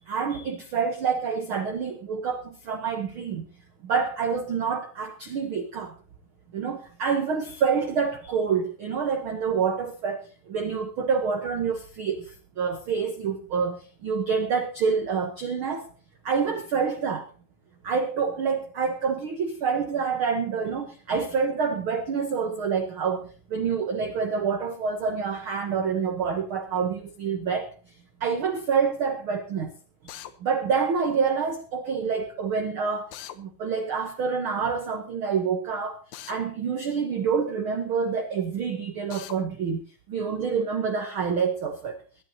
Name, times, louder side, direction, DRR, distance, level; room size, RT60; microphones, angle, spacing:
voice 1, 0.0-3.5 3.8-5.9 6.5-15.9 16.2-17.3 17.8-27.7 28.2-29.7 30.0-30.1 30.4-36.0 36.3-42.0, right 6 dB, 80° right, 7 dB, 1.1 m, -27 dB
Drill, 30.1-30.3 33.1-33.4 36.1-36.4 39.1-39.4, left 12 dB, 80° left, 2.6 m, -40 dB
21.5 x 12.0 x 2.8 m, 0.37 s
omnidirectional pair, 4.1 m